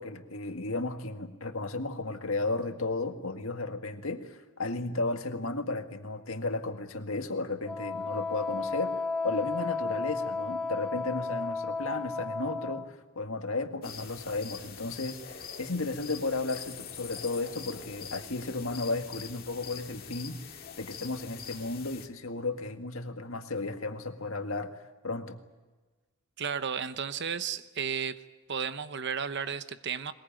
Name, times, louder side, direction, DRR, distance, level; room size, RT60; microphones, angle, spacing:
voice 1, 0.0-25.4, left 3 dB, 70° left, 6 dB, 1.9 m, -34 dB
Wind instrument woodwind instrument, 7.7-12.9, left 4 dB, 5° left, 1.1 m, -33 dB
sound 1, 13.8-22.1, left 7 dB, 45° left, 2.0 m, -44 dB
voice 2, 26.4-28.2 28.5-30.1, right 7 dB, 55° right, 12 dB, 0.9 m, -33 dB
21.5 x 21.0 x 9.0 m, 1.3 s
head